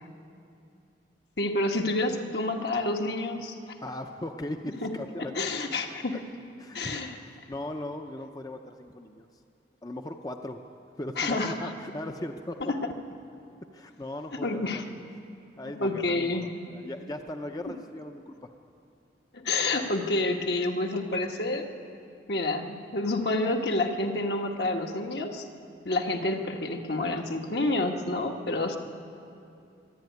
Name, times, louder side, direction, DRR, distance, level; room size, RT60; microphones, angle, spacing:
voice 1, 1.4-3.6 4.8-4.9 5.3-6.2 6.7-7.2 11.2-11.7 12.6-12.8 14.4-14.8 15.8-16.5 19.3-21.7 22.3-25.5 25.8-28.8, left 2 dB, 65° left, 2 dB, 1.6 m, -28 dB
voice 2, 3.8-5.3 6.6-9.3 9.8-10.6 11.0-12.6 13.7-15.0 15.6-18.5, left 1 dB, 20° left, 5 dB, 0.6 m, -38 dB
24.0 x 11.5 x 9.4 m, 2.6 s
head